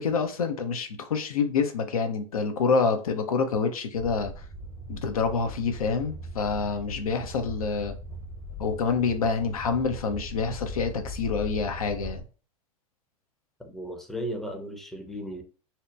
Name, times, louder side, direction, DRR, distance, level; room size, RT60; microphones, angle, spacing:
voice 1, 0.0-4.4 4.9-7.9 8.6-12.2, left 5 dB, 85° left, 0.5 m, -27 dB
sound 1, 3.9-12.2, left 1 dB, 55° left, 0.9 m, -40 dB
voice 2, 13.6-15.4, equal, ahead, 0.5 m, -35 dB
2.8 x 2.1 x 2.2 m
hypercardioid pair, 90°, 18 cm